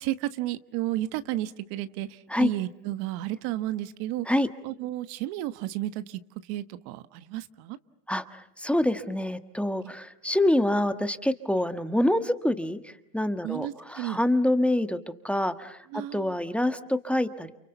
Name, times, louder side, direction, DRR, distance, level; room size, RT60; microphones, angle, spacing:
voice 1, 0.0-4.3 4.6-7.8 9.8-9.9 13.4-14.2 15.9-16.3, right 14 dB, 70° right, 12 dB, 1.4 m, -32 dB
voice 2, 8.1-15.0 15.2-15.8 16.1-17.5, left 1 dB, 5° left, 9 dB, 1.4 m, -26 dB
30.0 x 27.5 x 7.0 m, 0.77 s
supercardioid pair, 120°, 40 cm